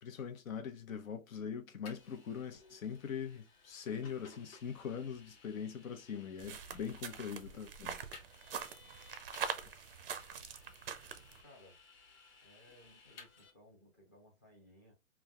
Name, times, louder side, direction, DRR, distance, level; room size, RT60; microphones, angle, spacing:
voice 1, 0.0-8.0 10.1-10.3, left 7 dB, 80° left, 0.9 m, -42 dB
Vehicle, 1.9-13.5, left 4 dB, 50° left, 1.2 m, -60 dB
sound 1, 6.4-11.4, right 7 dB, 45° right, 0.4 m, -44 dB
voice 2, 7.5-8.0 11.0-11.8 12.4-14.9, left 1 dB, 15° left, 0.5 m, -62 dB
3.2 x 2.2 x 2.2 m
hypercardioid pair, 160°, 40 cm